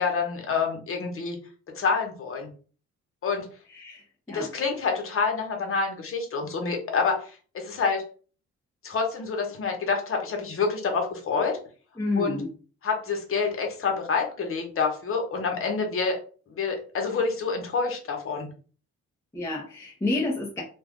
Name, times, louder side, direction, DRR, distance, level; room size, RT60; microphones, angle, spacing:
voice 1, 0.0-1.4 1.7-2.5 3.2-3.5 4.3-8.0 8.8-11.6 12.2-12.4 12.8-16.2 16.5-18.5, left 5 dB, 45° left, 3 dB, 1.0 m, -27 dB
voice 2, 3.7-4.5 12.0-12.5 19.3-20.6, left 2 dB, 10° left, -2 dB, 0.8 m, -29 dB
2.5 x 2.3 x 3.6 m, 0.40 s
cardioid pair, 90°, 30 cm